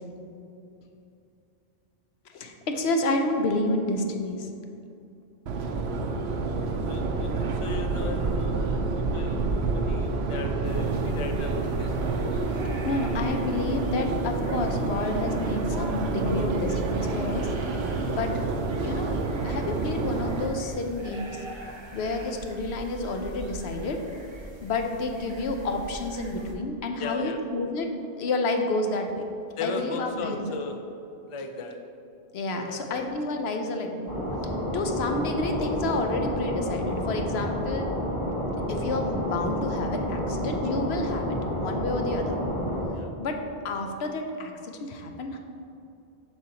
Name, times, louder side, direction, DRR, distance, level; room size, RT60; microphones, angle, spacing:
voice 1, 2.3-4.5 12.8-17.5 18.1-18.3 18.8-19.2 19.4-21.4 21.9-24.0 24.6-27.9 28.2-29.1 29.6-30.5 32.3-34.1 34.7-37.9 38.7-42.4 43.2-45.4, left 2 dB, 90° left, 4 dB, 0.9 m, -29 dB
Subway metro underground, 5.5-20.5, right 3 dB, 80° right, 0.9 m, -28 dB
voice 2, 6.0-6.5 6.8-8.6 8.9-12.3 27.0-27.4 29.6-30.8 31.3-31.8 32.5-33.1 42.9-43.1, left 3 dB, 40° left, 4 dB, 0.5 m, -37 dB
sound 1, 10.6-26.5, right 1 dB, 30° right, 0.8 m, -42 dB
sound 2, 34.1-42.9, equal, 20° left, 1.4 m, -30 dB
7.5 x 6.2 x 2.9 m, 2.7 s
omnidirectional pair, 1.1 m